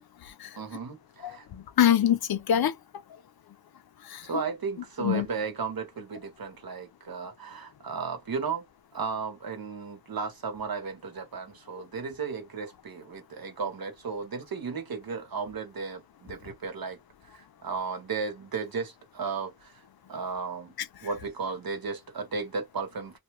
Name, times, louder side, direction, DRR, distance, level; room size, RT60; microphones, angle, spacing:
voice 1, 0.6-1.5 4.2-8.7 8.9-17.0 17.2-19.8 20.1-20.7 21.0-23.2, right 5 dB, 75° right, 1.1 m, -35 dB
voice 2, 1.2-2.8 4.1-4.2 5.0-5.3, left 10 dB, 85° left, 0.6 m, -24 dB
2.5 x 2.2 x 3.0 m
wide cardioid pair, 70°, 36 cm